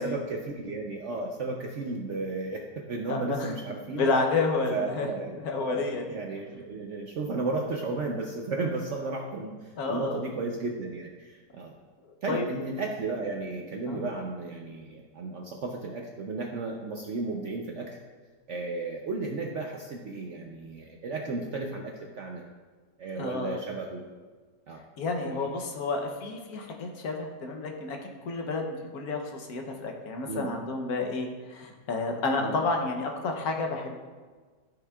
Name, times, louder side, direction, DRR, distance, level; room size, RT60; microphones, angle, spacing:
voice 1, 0.0-4.1 4.7-5.3 5.6-11.7 12.2-17.9 18.5-22.4 23.0-24.0 24.7-24.8 25.1-25.6 30.3-30.5 32.4-32.5, right 3 dB, 65° right, 1 dB, 0.7 m, -34 dB
voice 2, 3.1-3.5 3.9-6.0 9.8-10.2 12.0-12.5 13.9-14.1 23.2-23.6 25.0-34.0, left 3 dB, 65° left, 2 dB, 1.2 m, -30 dB
13.0 x 5.5 x 2.3 m, 1.4 s
omnidirectional pair, 1.8 m